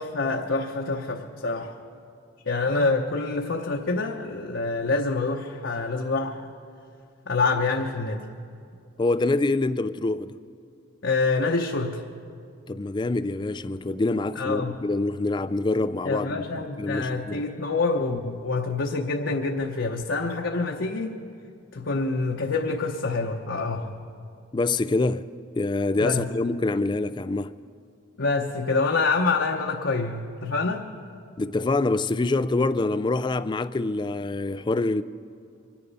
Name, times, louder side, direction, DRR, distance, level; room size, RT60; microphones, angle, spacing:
voice 1, 0.0-1.7 2.5-6.5 7.3-8.3 11.0-12.0 14.3-14.7 16.0-21.2 21.7-24.0 26.0-26.3 28.2-30.9, left 3 dB, 60° left, 0.8 m, -26 dB
voice 2, 9.0-10.4 12.7-16.4 16.8-17.4 24.5-25.3 25.6-27.5 31.4-35.0, left 2 dB, 20° left, 0.3 m, -25 dB
25.0 x 10.0 x 5.4 m
head